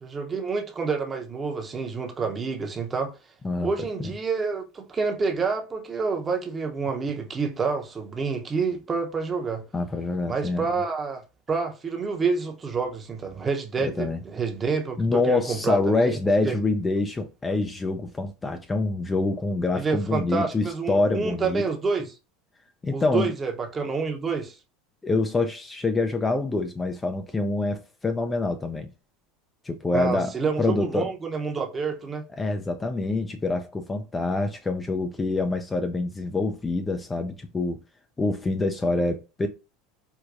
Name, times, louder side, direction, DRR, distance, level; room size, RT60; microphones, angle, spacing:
voice 1, 0.0-3.1 3.6-9.6 10.3-11.2 11.5-16.2 16.4-16.6 19.7-22.1 22.9-24.5 29.9-32.2, right 4 dB, 25° right, 0.8 m, -28 dB
voice 2, 3.4-4.1 9.7-10.8 13.8-14.2 15.0-21.6 22.8-23.3 25.0-28.9 29.6-31.1 32.3-37.8 38.2-39.5, left 3 dB, 20° left, 0.4 m, -26 dB
4.6 x 2.2 x 2.5 m
supercardioid pair, 105°, 0 cm